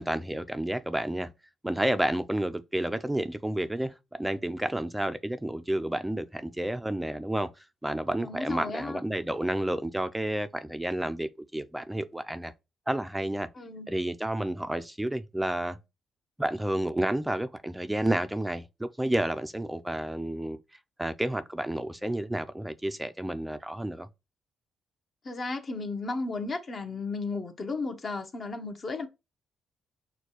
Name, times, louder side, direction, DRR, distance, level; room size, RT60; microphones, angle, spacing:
voice 1, 0.0-1.3 1.6-7.5 7.8-12.5 12.9-13.5 13.9-15.8 16.4-20.6 21.0-24.1, right 1 dB, 10° right, 0.5 m, -30 dB
voice 2, 8.2-9.0 13.5-13.9 25.2-29.1, left 3 dB, 40° left, 0.9 m, -34 dB
6.3 x 2.3 x 3.0 m
cardioid pair, 90°, 0 cm